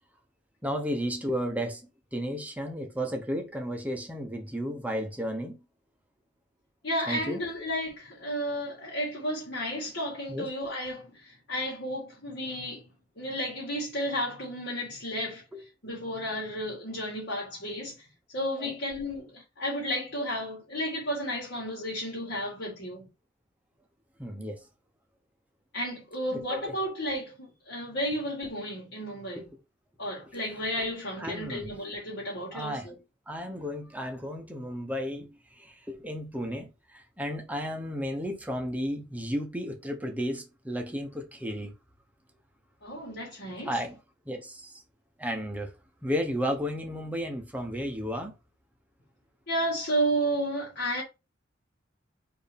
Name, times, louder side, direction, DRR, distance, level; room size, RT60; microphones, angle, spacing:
voice 1, 0.6-1.8 2.1-5.6 7.1-7.4 10.3-10.5 15.5-15.6 18.6-18.7 24.2-24.6 26.3-26.8 31.2-31.7 32.5-33.0 33.3-41.7 43.6-44.0 44.3-44.8 45.2-45.7 46.0-48.3, equal, 10° right, 0.9 m, -33 dB
voice 2, 6.8-12.8 13.2-15.4 15.8-18.1 18.3-23.1 25.7-29.4 30.0-32.9 42.8-43.8 49.5-51.0, equal, 60° left, 1.9 m, -32 dB
4.4 x 2.8 x 3.4 m
head